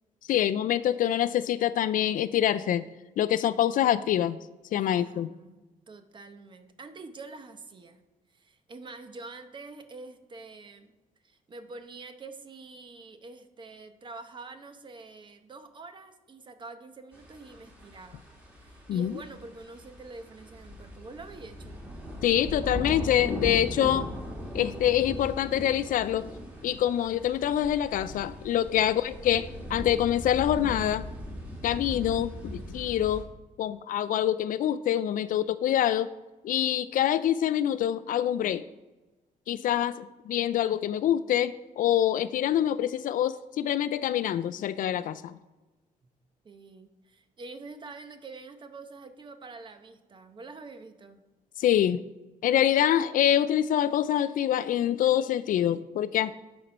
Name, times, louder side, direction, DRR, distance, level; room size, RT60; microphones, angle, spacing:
voice 1, 0.3-2.9 3.2-4.4 4.7-5.3 18.9-19.1 22.2-24.1 24.5-26.3 26.6-31.1 31.6-33.3 33.6-36.1 36.4-38.7 39.5-45.4 51.6-52.0 52.4-56.3, left 11 dB, 65° left, 15 dB, 0.4 m, -25 dB
voice 2, 4.7-8.0 8.3-10.9 11.2-18.2 18.6-21.8 39.6-39.8 46.0-46.1 46.4-51.2, right 3 dB, 30° right, 7 dB, 0.9 m, -46 dB
sound 1, 17.1-33.2, equal, 10° right, 2.0 m, -39 dB
12.0 x 4.5 x 5.2 m, 1.1 s
cardioid pair, 140°, 15 cm